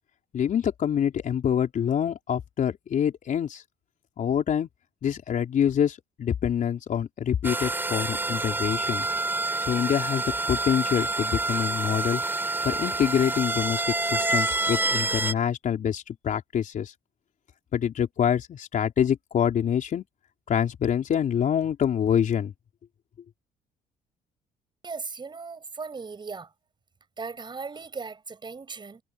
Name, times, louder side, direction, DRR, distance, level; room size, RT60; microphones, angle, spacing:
voice 1, 0.3-3.6 4.2-4.7 5.0-9.0 9.6-12.2 12.6-16.9 17.7-20.0 20.5-22.5, left 9 dB, 50° left, 4.4 m, -26 dB
sound 1, 7.4-15.3, right 2 dB, 10° right, 6.2 m, -27 dB
voice 2, 24.8-26.5 27.2-29.0, right 4 dB, 25° right, 7.9 m, -37 dB
cardioid pair, 110°, 17 cm